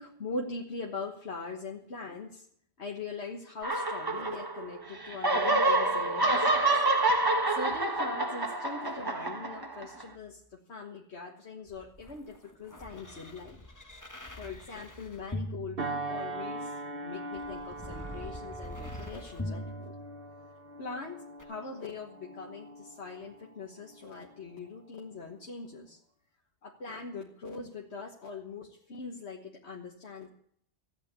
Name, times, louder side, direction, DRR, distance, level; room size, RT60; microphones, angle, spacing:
voice 1, 0.0-2.5 2.8-6.8 7.5-13.6 14.4-16.7 17.0-19.9 20.8-26.0 26.6-30.3, left 3 dB, 85° left, -1 dB, 1.8 m, -41 dB
sound 1, 3.6-4.8 5.0-10.0, right 2 dB, 20° right, 1.1 m, -27 dB
sound 2, 11.7-16.6 17.3-20.6 21.4-21.5, left 1 dB, 15° left, 1.3 m, -43 dB
sound 3, 15.8-24.6 25.1-25.3, right 2 dB, 60° right, 1.4 m, -41 dB
14.0 x 8.8 x 8.5 m, 0.66 s
omnidirectional pair, 1.1 m